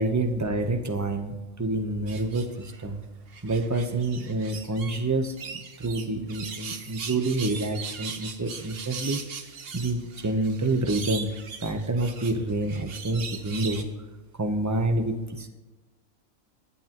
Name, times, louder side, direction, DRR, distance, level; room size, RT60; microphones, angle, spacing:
voice 1, 0.0-3.0 3.4-9.2 9.7-11.3 11.6-13.9 14.4-15.5, right 2 dB, 15° right, 6 dB, 0.7 m, -28 dB
sound 1, 2.1-2.8 3.3-5.0 5.4-13.8, right 5 dB, 50° right, 1.1 m, -39 dB
22.5 x 8.4 x 3.0 m, 1.2 s
omnidirectional pair, 1.4 m